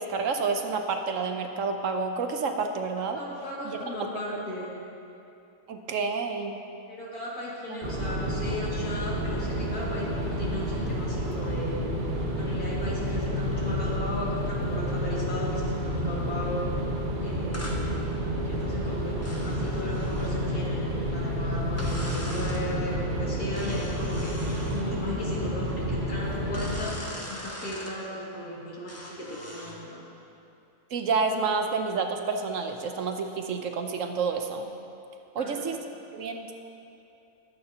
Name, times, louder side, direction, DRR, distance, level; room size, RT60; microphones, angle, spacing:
voice 1, 0.0-3.2 3.6-4.1 5.7-6.6 7.7-7.8 30.9-34.7 35.3-35.8 36.1-36.5, right 4 dB, 65° right, 5 dB, 1.1 m, -29 dB
voice 2, 3.1-4.7 6.9-11.8 12.4-16.7 17.2-18.0 18.5-30.0 35.4-35.6, left 1 dB, 90° left, -5 dB, 2.7 m, -36 dB
sound 1, 7.8-26.9, equal, 35° right, 1.3 m, -30 dB
sound 2, 17.5-17.8 19.2-20.4 21.8-22.6 23.5-24.9 26.5-28.0 28.9-29.8, equal, 10° left, 1.0 m, -41 dB
21.5 x 8.6 x 2.9 m, 2.8 s
omnidirectional pair, 1.5 m